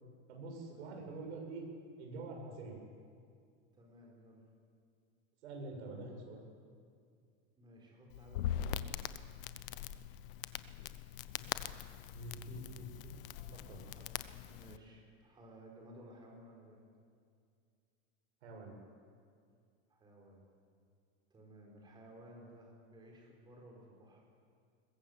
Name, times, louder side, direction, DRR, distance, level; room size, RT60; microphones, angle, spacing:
voice 1, 0.3-1.7 2.0-2.8 5.4-6.4 12.1-13.1 13.5-13.8 18.4-18.7, right 2 dB, 65° right, 1 dB, 7.3 m, -46 dB
voice 2, 3.7-4.4 7.6-8.9 13.9-14.1 14.5-16.8 19.9-20.4 21.3-24.2, right 1 dB, 10° right, -1 dB, 4.6 m, -56 dB
Crackle, 8.1-14.8, left 11 dB, 50° left, 0.9 m, -42 dB
22.0 x 21.0 x 8.1 m, 2.3 s
supercardioid pair, 170°, 36 cm